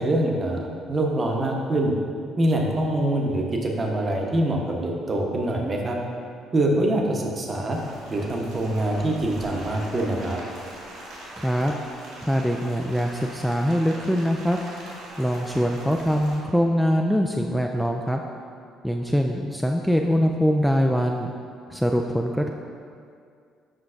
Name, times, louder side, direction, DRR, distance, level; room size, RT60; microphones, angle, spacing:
voice 1, 0.0-2.0 2.4-6.0 6.5-7.8 8.1-10.4, right 1 dB, 30° right, 0 dB, 0.9 m, -24 dB
Rain, 7.7-16.4, right 1 dB, 70° right, 1.5 m, -42 dB
voice 2, 11.4-11.7 12.2-14.6 15.2-18.2 18.8-21.3 21.7-22.5, equal, ahead, 2 dB, 0.3 m, -23 dB
7.5 x 5.6 x 2.5 m, 2.3 s
figure-of-eight pair, 50°, 0 cm